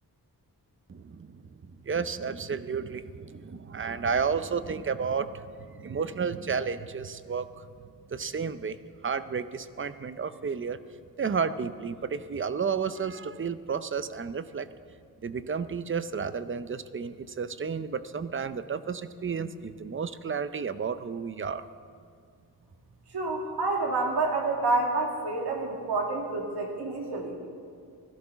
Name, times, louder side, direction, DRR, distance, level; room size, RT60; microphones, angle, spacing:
voice 1, 0.9-7.7 8.1-8.8 9.0-10.8 11.2-14.7 15.2-21.6, right 6 dB, 35° right, 13 dB, 0.6 m, -32 dB
voice 2, 23.1-27.3, right 3 dB, 90° right, 1 dB, 2.5 m, -28 dB
16.0 x 14.0 x 5.8 m, 2.4 s
wide cardioid pair, 145°, 38 cm